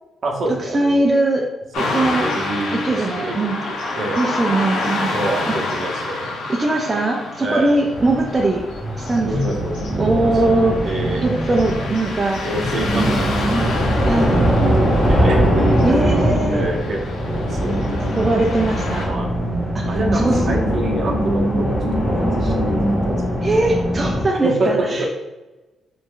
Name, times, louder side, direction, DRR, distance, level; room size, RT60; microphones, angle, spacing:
voice 1, 0.2-1.1 1.8-4.2 5.1-6.4 7.4-7.8 9.2-10.3 10.8-11.9 12.4-13.5 14.8-16.1 16.5-17.0 17.3-18.0 19.0-19.3 19.8-23.7 24.4-25.1, right 2 dB, 55° right, 0 dB, 0.8 m, -27 dB
voice 2, 0.7-1.4 1.9-2.2 2.8-3.6 4.2-5.1 5.5-5.6 6.5-8.6 9.0-9.3 10.0-10.9 11.2-12.4 14.1-14.4 15.8-16.6 18.0-19.1 19.8-20.4 23.4-25.1, right 2 dB, 25° right, -1 dB, 0.5 m, -20 dB
Car passing by / Traffic noise roadway noise, 1.7-19.1, left 2 dB, 85° left, 0.8 m, -29 dB
sound 1, 7.9-24.2, equal, 20° left, 1.2 m, -21 dB
3.0 x 2.6 x 3.8 m, 1.1 s
cardioid pair, 100°, 0 cm